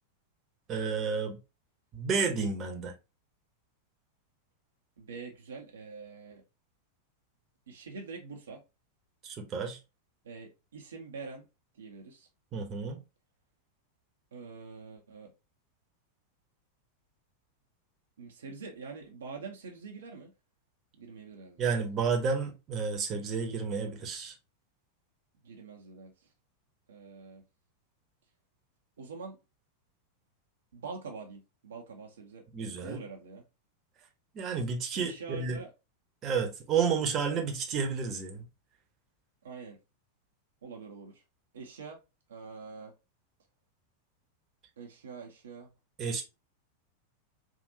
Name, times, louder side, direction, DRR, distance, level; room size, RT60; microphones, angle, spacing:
voice 1, 0.7-1.4 1.9-2.9 9.2-9.8 12.5-13.0 21.6-24.3 32.5-33.0 34.3-35.6 36.2-38.4 46.0-46.2, right 5 dB, 30° right, 0.9 m, -31 dB
voice 2, 5.0-6.4 7.7-8.6 10.2-11.5 11.7-12.3 14.3-15.3 18.2-20.3 21.0-21.7 25.4-26.3 26.9-27.4 29.0-29.4 30.7-32.4 32.8-33.4 34.9-35.7 39.4-39.8 40.6-41.2 41.5-42.0 42.3-42.9 44.8-45.7, right 4 dB, 65° right, 0.7 m, -45 dB
3.6 x 2.5 x 2.7 m
figure-of-eight pair, 90°, 0 cm